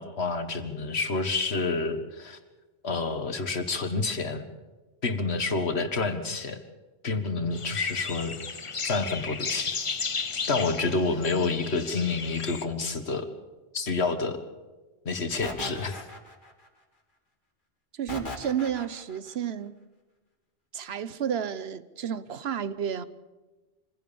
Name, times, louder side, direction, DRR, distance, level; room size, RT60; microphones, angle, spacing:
voice 1, 0.0-2.4 2.8-4.5 5.0-6.6 7.0-8.4 8.8-9.7 10.5-13.3 13.7-14.4 15.1-16.1, left 3 dB, 80° left, 1.9 m, -28 dB
sound 1, 7.5-12.7, left 5 dB, 35° left, 0.8 m, -34 dB
sound 2, 15.4-16.7 18.1-19.2, left 1 dB, 50° left, 2.4 m, -38 dB
voice 2, 17.9-19.7 20.7-23.0, right 8 dB, 75° right, 1.1 m, -31 dB
25.0 x 16.5 x 7.0 m
omnidirectional pair, 1.1 m